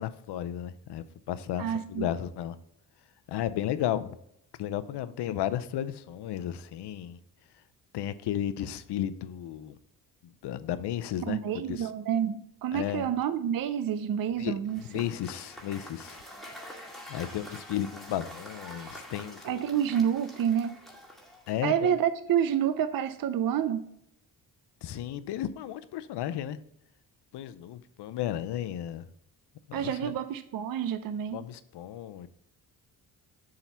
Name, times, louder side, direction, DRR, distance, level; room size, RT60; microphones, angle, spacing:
voice 1, 0.0-2.5 3.3-4.2 4.6-7.2 7.9-9.8 10.2-11.4 11.7-11.9 12.7-13.1 14.4-14.5 14.8-16.2 17.1-19.6 21.5-21.9 24.8-26.6 27.3-29.0 29.7-30.1 31.3-32.3, left 11 dB, 65° left, 13 dB, 0.7 m, -34 dB
voice 2, 1.6-2.1 11.3-14.8 19.4-20.8 21.6-23.8 29.7-31.4, right 9 dB, 50° right, 11 dB, 0.6 m, -28 dB
Cheering / Applause / Crowd, 14.7-21.8, equal, ahead, 2.1 m, -46 dB
7.2 x 3.8 x 5.6 m, 0.77 s
supercardioid pair, 55°, 43 cm